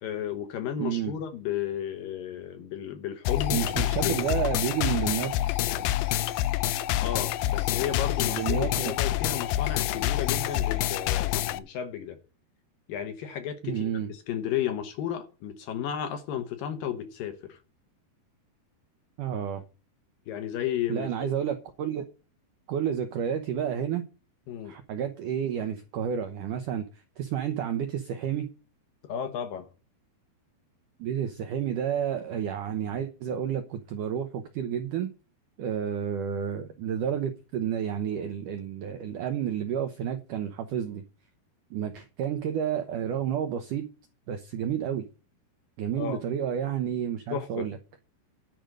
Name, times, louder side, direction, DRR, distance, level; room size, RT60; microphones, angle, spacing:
voice 1, 0.0-4.3 6.0-6.2 6.6-6.7 7.0-12.2 12.9-17.6 20.3-21.3 24.5-24.7 29.0-29.7 46.0-46.2 47.3-47.7, left 9 dB, 70° left, 2.4 m, -33 dB
voice 2, 0.8-1.1 3.5-5.3 8.2-8.9 13.6-14.1 19.2-19.6 20.9-22.1 22.7-24.0 24.7-28.5 31.0-35.1 35.6-41.0 41.7-43.9 44.3-45.1 45.8-47.8, right 9 dB, 80° right, 1.8 m, -30 dB
sound 1, 3.2-11.6, left 14 dB, 90° left, 2.0 m, -27 dB
10.5 x 5.1 x 7.8 m
omnidirectional pair, 4.9 m